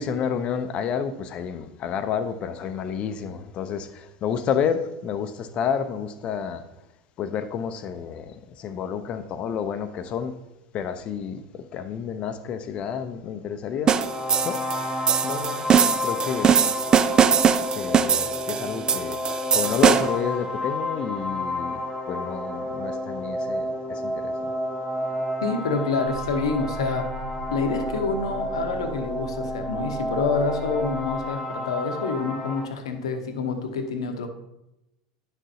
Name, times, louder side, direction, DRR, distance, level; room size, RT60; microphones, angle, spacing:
voice 1, 0.0-6.6 7.2-10.4 10.7-14.0 14.4-14.6 15.2-15.7 16.0-16.6 17.7-19.2 19.5-21.8 22.1-24.5, left 7 dB, 40° left, 0.6 m, -30 dB
sound 1, 13.8-32.7, left 1 dB, 10° right, 0.9 m, -31 dB
sound 2, 13.9-20.2, right 7 dB, 25° right, 0.4 m, -21 dB
voice 2, 25.4-27.1 27.5-34.3, left 4 dB, 70° left, 0.9 m, -27 dB
sound 3, 26.0-31.2, right 2 dB, 65° right, 1.5 m, -38 dB
9.8 x 6.1 x 2.7 m
figure-of-eight pair, 80°, 3 cm